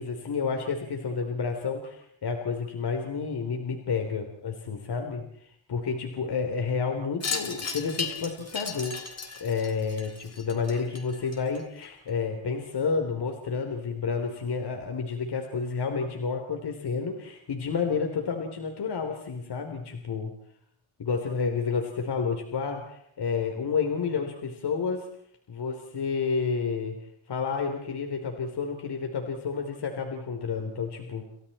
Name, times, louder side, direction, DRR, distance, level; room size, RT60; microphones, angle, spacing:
voice 1, 0.0-20.3 21.0-25.1 25.5-27.0 27.3-31.3, left 5 dB, 55° left, 4 dB, 3.7 m, -30 dB
Wind chime, 7.2-11.8, left 4 dB, 30° left, 3.7 m, -36 dB
30.0 x 29.5 x 4.4 m, 0.70 s
cardioid pair, 110°, 48 cm